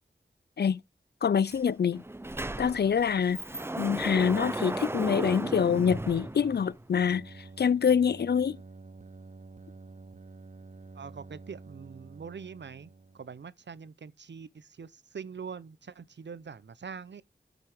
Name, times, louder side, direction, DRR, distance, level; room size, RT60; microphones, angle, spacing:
voice 1, 1.2-2.0 2.6-3.4 3.8-8.6, left 7 dB, 65° left, 0.4 m, -26 dB
Sliding door, 1.5-1.6 1.9-6.9, right 1 dB, 15° right, 0.5 m, -35 dB
sound 1, 4.9-13.5, right 3 dB, 45° right, 1.0 m, -50 dB
voice 2, 10.9-17.2, right 6 dB, 80° right, 0.7 m, -44 dB
13.0 x 6.1 x 3.5 m
wide cardioid pair, 45°, 18 cm